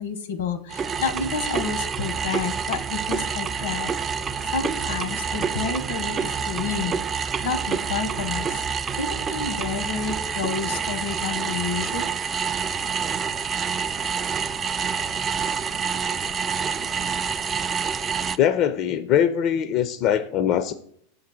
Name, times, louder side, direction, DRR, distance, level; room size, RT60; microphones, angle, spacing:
voice 1, 0.0-3.9 4.5-7.0 7.4-8.6 9.0-12.1, left 5 dB, 80° left, 10 dB, 1.0 m, -30 dB
sound 1, 0.7-18.4, right 6 dB, 25° right, 0.3 m, -27 dB
voice 2, 18.4-20.7, left 9 dB, 45° left, 12 dB, 0.4 m, -22 dB
5.9 x 3.8 x 5.8 m, 0.66 s
hypercardioid pair, 120°, 0 cm